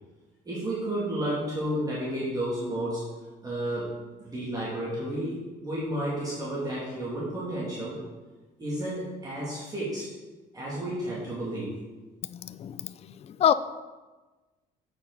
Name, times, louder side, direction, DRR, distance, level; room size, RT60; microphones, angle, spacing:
voice 1, 0.4-3.0 3.4-3.9 4.2-8.0 8.6-10.0 10.5-11.7, right 1 dB, 20° right, -8 dB, 2.5 m, -31 dB
voice 2, 12.2-13.5, left 9 dB, 40° left, 13 dB, 0.4 m, -27 dB
7.7 x 6.3 x 4.0 m, 1.2 s
cardioid pair, 110°, 17 cm